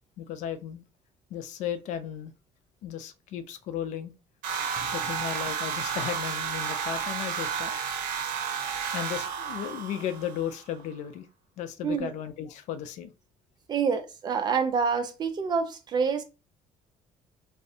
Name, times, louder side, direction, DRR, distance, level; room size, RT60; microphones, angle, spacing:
voice 1, 0.2-0.8 1.3-2.3 2.8-4.1 4.9-7.8 8.9-11.3 11.6-13.1, left 9 dB, 70° left, 0.4 m, -35 dB
sound 1, 4.4-10.6, right 7 dB, 85° right, 0.6 m, -32 dB
voice 2, 13.7-16.2, right 5 dB, 35° right, 0.4 m, -27 dB
2.5 x 2.0 x 2.7 m
cardioid pair, 145°, 13 cm